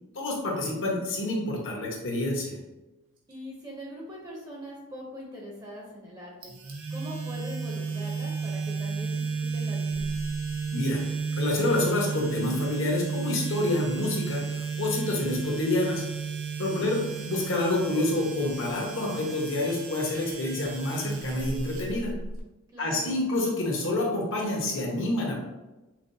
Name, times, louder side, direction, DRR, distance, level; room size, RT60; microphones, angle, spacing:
voice 1, 0.1-2.6 10.7-11.0 11.3-16.0 16.6-22.1 22.8-25.3, left 2 dB, 60° left, -1 dB, 1.0 m, -28 dB
voice 2, 3.3-6.5 6.9-10.1 16.7-16.9 22.7-23.1, equal, 20° right, -2 dB, 0.7 m, -42 dB
sound 1, 6.4-22.4, right 5 dB, 75° right, 0.8 m, -33 dB
5.8 x 2.2 x 2.7 m, 1.1 s
head